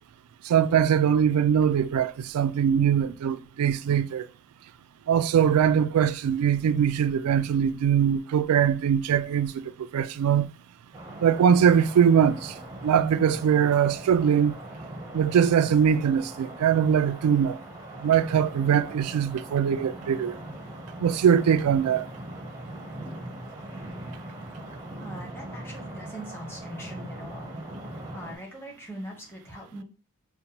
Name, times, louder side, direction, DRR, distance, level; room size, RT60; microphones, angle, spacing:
voice 1, 0.5-4.3 5.1-10.5 11.2-12.5 12.8-14.6 15.1-17.6 18.0-20.3 21.0-22.1, right 8 dB, 80° right, 0.3 m, -22 dB
sound 1, 10.9-28.4, right 1 dB, 15° right, 0.6 m, -40 dB
voice 2, 25.0-27.6 28.1-29.8, equal, 10° left, 0.9 m, -41 dB
5.2 x 2.1 x 2.8 m
head